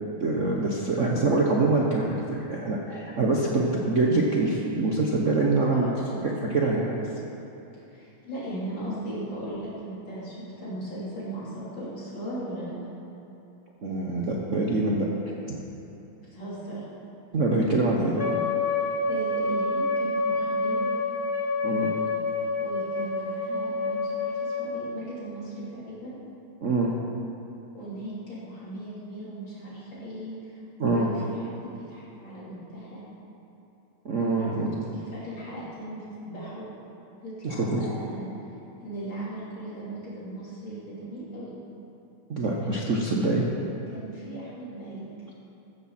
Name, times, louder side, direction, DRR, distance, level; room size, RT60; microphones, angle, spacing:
voice 1, 0.2-5.9 6.2-7.0 13.8-15.1 15.5-15.6 17.3-18.3 21.6-21.9 26.6-26.9 30.8-31.1 34.0-34.7 37.4-37.9 42.3-43.5, right 2 dB, 45° right, -2 dB, 1.0 m, -25 dB
voice 2, 5.7-6.3 7.9-12.7 16.3-16.8 19.1-20.9 22.6-26.1 27.7-33.0 34.3-36.7 37.2-38.3 38.8-41.5 43.9-45.0, right 1 dB, 55° left, -9 dB, 4.6 m, -38 dB
Wind instrument woodwind instrument, 18.2-24.7, left 3 dB, 30° left, 1.8 m, -28 dB
14.5 x 13.5 x 4.3 m, 2.9 s
omnidirectional pair, 2.4 m